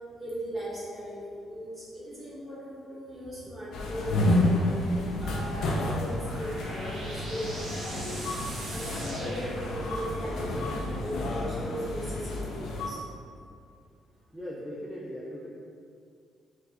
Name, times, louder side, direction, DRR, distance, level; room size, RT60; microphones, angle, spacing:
voice 1, 0.2-4.8 5.2-8.3 8.7-13.0, equal, 20° right, -9 dB, 1.4 m, -38 dB
sound 1, 3.7-12.9, left 1 dB, 80° left, 0.4 m, -30 dB
sound 2, 5.8-10.2, right 1 dB, 85° right, 1.2 m, -42 dB
voice 2, 14.3-15.5, equal, ahead, -7 dB, 0.5 m, -39 dB
3.8 x 2.5 x 2.9 m, 2.3 s
cardioid pair, 90°, 0 cm